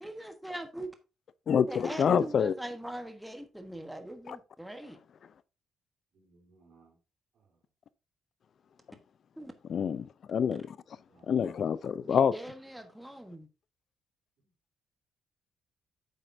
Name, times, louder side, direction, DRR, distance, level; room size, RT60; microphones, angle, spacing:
voice 1, 0.0-0.9 1.7-5.0 9.4-9.5 12.0-13.5, right 1 dB, 5° right, 1.3 m, -42 dB
voice 2, 1.5-2.5 4.3-4.4 9.7-10.8 11.3-12.3, left 7 dB, 55° left, 0.5 m, -27 dB
voice 3, 6.1-7.0 7.3-7.6 11.1-11.3, right 3 dB, 70° right, 3.8 m, -63 dB
9.0 x 7.6 x 2.7 m
cardioid pair, 90°, 0 cm